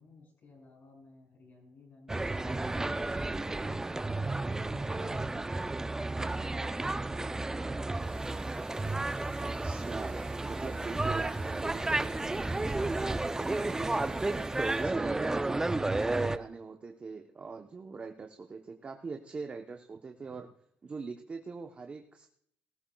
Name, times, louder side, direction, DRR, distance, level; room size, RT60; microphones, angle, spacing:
voice 1, 0.0-3.6 4.3-5.6, left 3 dB, 60° left, -3 dB, 5.7 m, -56 dB
sound 1, 2.1-16.4, right 2 dB, 15° right, 0.4 m, -32 dB
sound 2, 7.9-14.9, right 6 dB, 55° right, 3.2 m, -58 dB
voice 2, 9.4-20.5 20.8-22.3, right 4 dB, 30° right, 4 dB, 0.8 m, -43 dB
18.5 x 14.5 x 2.3 m, 0.69 s
cardioid pair, 110°, 4 cm